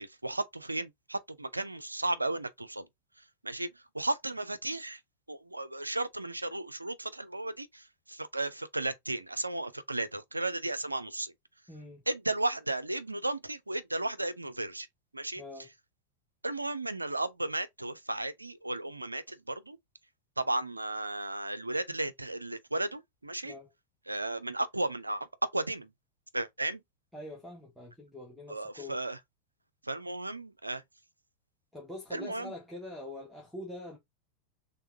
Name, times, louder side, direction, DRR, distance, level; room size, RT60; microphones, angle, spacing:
voice 1, 0.0-2.9 3.4-5.0 5.3-11.3 12.1-14.9 15.1-15.4 16.4-19.8 20.4-23.5 24.1-25.9 26.3-26.8 28.5-29.2 29.8-30.8 32.1-32.5, right 2 dB, 85° right, 0.5 m, -34 dB
voice 2, 11.7-12.0 15.4-15.7 23.4-23.7 27.1-29.0 31.7-34.0, left 2 dB, ahead, 1.5 m, -44 dB
5.6 x 3.5 x 2.6 m
figure-of-eight pair, 90°, 0 cm